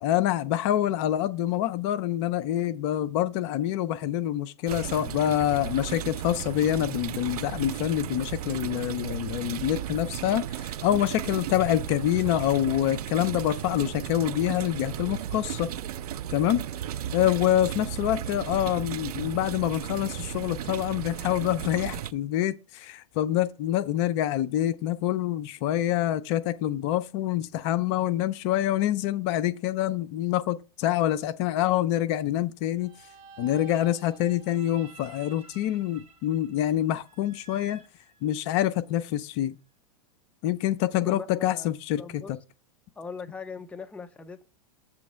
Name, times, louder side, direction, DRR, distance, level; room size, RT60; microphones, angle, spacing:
voice 1, 0.0-15.7 16.3-16.6 17.1-32.9 33.4-37.8 38.2-39.5 40.4-42.4, left 12 dB, 50° left, 0.6 m, -26 dB
sound 1, 4.7-22.1, right 11 dB, 80° right, 0.5 m, -35 dB
sound 2, 32.8-38.8, right 4 dB, 35° right, 2.0 m, -51 dB
voice 2, 41.0-41.7 41.9-42.3 43.0-44.4, left 5 dB, 5° left, 0.6 m, -39 dB
7.6 x 3.1 x 6.2 m
hypercardioid pair, 120°, 19 cm